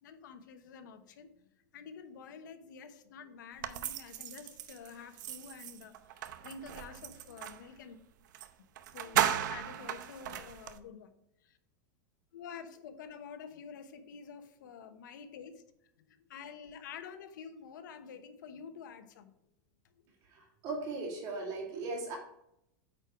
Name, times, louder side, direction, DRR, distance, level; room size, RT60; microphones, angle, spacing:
voice 1, 0.0-1.3 1.7-8.0 8.9-11.1 11.4-11.6 12.3-15.6 16.3-19.3, left 6 dB, 85° left, 9 dB, 1.1 m, -48 dB
sound 1, 3.6-7.7 8.3-8.5 8.8-10.8, right 11 dB, 80° right, 0.7 m, -36 dB
voice 2, 20.2-22.2, right 3 dB, 40° right, 0 dB, 2.5 m, -38 dB
8.9 x 4.6 x 4.7 m, 0.78 s
supercardioid pair, 165°, 10 cm